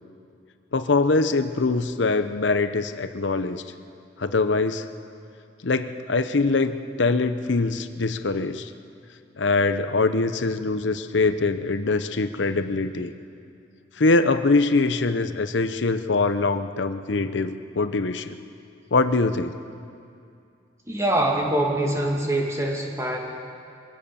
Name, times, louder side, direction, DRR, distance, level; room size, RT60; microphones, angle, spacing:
voice 1, 0.7-3.6 4.2-4.9 5.6-8.7 9.4-13.1 14.0-18.4 18.9-19.5, left 3 dB, 75° left, 10 dB, 0.8 m, -23 dB
voice 2, 20.9-23.2, right 1 dB, 15° right, 0 dB, 2.4 m, -24 dB
23.5 x 17.0 x 7.1 m, 2.5 s
head